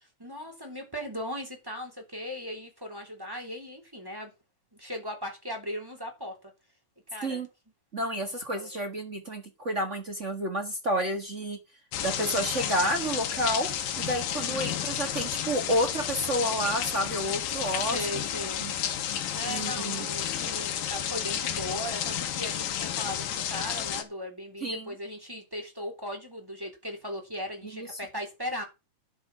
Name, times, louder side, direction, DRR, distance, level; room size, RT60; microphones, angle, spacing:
voice 1, 0.0-4.3 4.7-6.5 7.1-7.4 8.5-8.7 14.3-14.6 17.9-18.7 19.3-28.6, equal, 5° right, 3.0 m, -38 dB
voice 2, 7.9-11.6 12.0-13.7 14.0-18.3 18.6-18.7 19.5-20.1 24.6-24.9 27.7-27.9, equal, 45° right, 0.9 m, -30 dB
sound 1, 11.9-24.0, left 10 dB, 85° left, 3.1 m, -31 dB
11.5 x 6.9 x 6.2 m
omnidirectional pair, 3.9 m